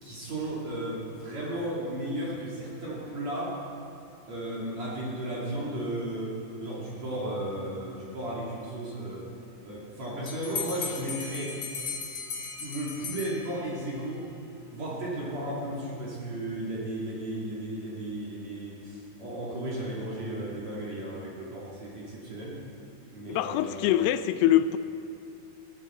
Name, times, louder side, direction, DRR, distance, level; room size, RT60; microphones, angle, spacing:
voice 1, 0.0-3.6 4.3-9.3 9.6-11.6 12.6-14.3 14.7-22.6 23.1-24.0, right 1 dB, 45° right, 3.2 m, -34 dB
Bell, 10.3-13.9, left 5 dB, 45° left, 3.2 m, -37 dB
voice 2, 23.3-24.8, left 12 dB, 85° left, 2.5 m, -24 dB
19.5 x 16.0 x 4.4 m
omnidirectional pair, 5.0 m